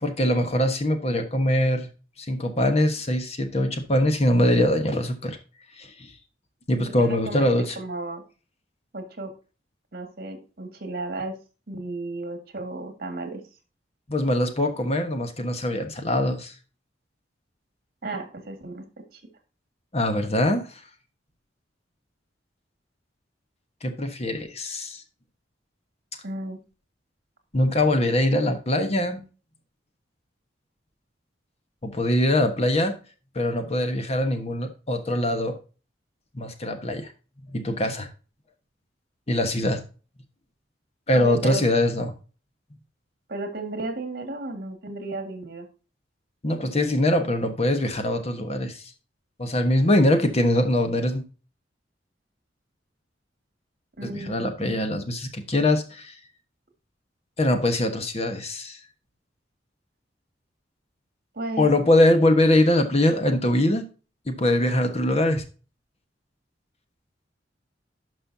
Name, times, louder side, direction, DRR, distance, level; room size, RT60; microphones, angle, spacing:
voice 1, 0.0-1.9 2.3-5.4 5.8-5.9 6.7-7.8 14.1-16.5 19.9-20.7 23.8-25.0 27.5-29.2 31.8-32.9 33.3-35.6 36.3-37.1 37.5-38.1 39.3-39.8 41.1-42.1 46.4-48.8 49.4-51.2 54.0-56.2 57.4-58.8 61.6-63.8 64.3-65.4, left 1 dB, 35° left, 7 dB, 1.2 m, -22 dB
voice 2, 6.8-7.5 7.7-8.2 8.9-9.3 9.9-11.3 11.7-13.4 18.0-18.9 19.1-19.2 26.2-26.6 41.1-41.6 43.3-45.7 54.0-54.5 61.3-61.7, right 2 dB, 55° right, 6 dB, 1.9 m, -33 dB
11.5 x 5.5 x 2.7 m, 0.34 s
head